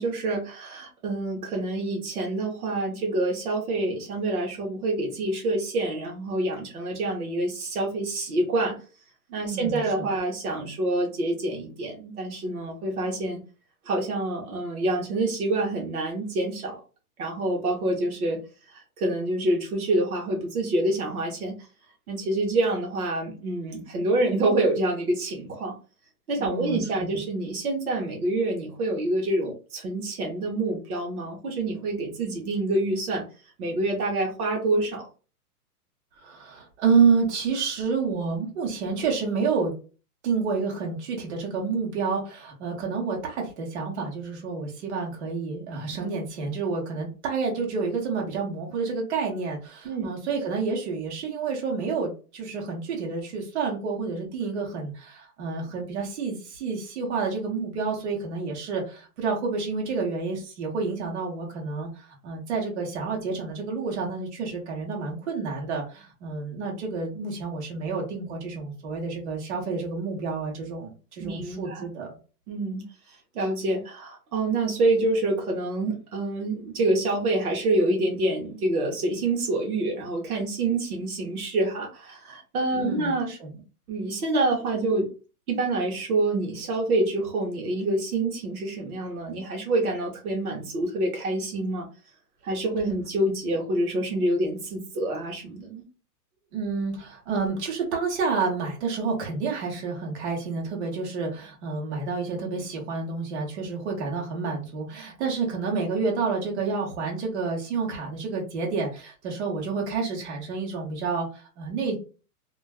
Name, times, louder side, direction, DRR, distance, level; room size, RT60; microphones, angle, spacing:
voice 1, 0.0-8.8 9.3-13.4 13.9-16.8 17.2-18.4 18.7-21.5 22.1-25.7 26.3-33.2 33.6-35.1 49.8-50.1 71.2-71.9 72.5-72.8 73.3-83.3 83.9-85.1 85.5-91.9 92.4-95.8, right 2 dB, 65° right, 1 dB, 1.0 m, -27 dB
voice 2, 9.5-10.1 26.4-27.1 36.2-39.7 40.2-72.1 82.7-83.5 96.5-112.0, right 4 dB, 45° right, 0 dB, 1.0 m, -29 dB
2.4 x 2.3 x 2.3 m, 0.34 s
hypercardioid pair, 160°, 47 cm